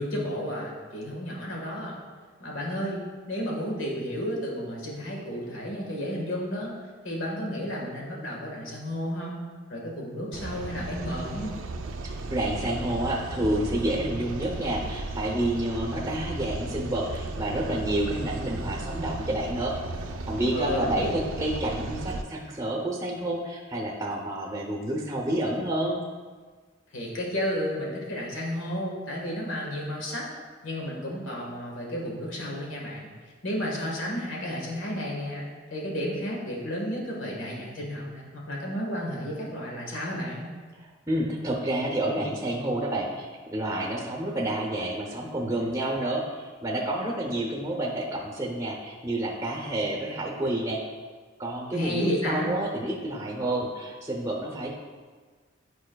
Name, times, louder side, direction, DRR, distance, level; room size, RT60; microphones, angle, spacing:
voice 1, 0.0-2.0 2.4-6.7 7.0-9.4 9.7-11.6 20.5-21.1 26.9-30.3 30.6-33.1 33.4-40.5 51.7-52.5, equal, 90° left, -3 dB, 1.5 m, -32 dB
sound 1, 10.3-22.2, right 2 dB, 85° right, 0.4 m, -35 dB
voice 2, 12.0-19.7 20.2-26.0 41.1-50.8 51.4-54.8, right 1 dB, 15° right, -2 dB, 0.6 m, -29 dB
9.0 x 4.7 x 2.3 m, 1.5 s
head